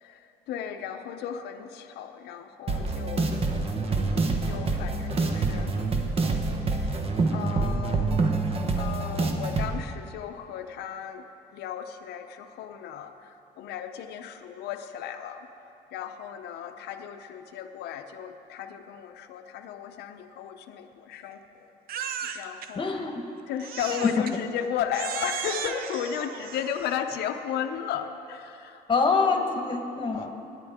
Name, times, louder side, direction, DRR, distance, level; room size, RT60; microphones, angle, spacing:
voice 1, 0.0-4.1 4.4-5.8 6.7-7.0 7.3-8.2 8.7-11.2 11.5-15.5 15.9-21.7 22.0-23.0 23.5-28.8 29.2-29.5, left 8 dB, 75° left, 6 dB, 0.7 m, -35 dB
sound 1, 2.7-9.7, right 3 dB, 35° right, 1.1 m, -26 dB
Crying sobbing, 21.9-22.7 23.6-24.4 24.9-27.0, right 8 dB, 60° right, 0.6 m, -35 dB
voice 2, 22.7-23.2 24.0-24.1 28.9-30.3, left 4 dB, 30° left, 4 dB, 1.3 m, -25 dB
19.0 x 9.8 x 3.6 m, 2.8 s
cardioid pair, 110°, 17 cm